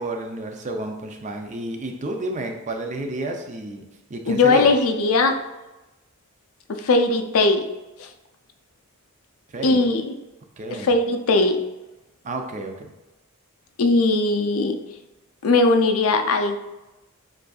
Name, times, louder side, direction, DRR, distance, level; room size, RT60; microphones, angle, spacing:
voice 1, 0.0-3.8 4.1-4.7 9.5-9.9 10.6-10.9 12.2-12.9, right 2 dB, 35° right, 4 dB, 0.5 m, -31 dB
voice 2, 4.3-5.4 6.7-7.7 8.0-8.1 9.6-10.2 10.7-11.6 13.8-14.8 15.4-16.6, left 3 dB, 75° left, 6 dB, 0.5 m, -19 dB
7.1 x 2.6 x 2.3 m, 1.0 s
head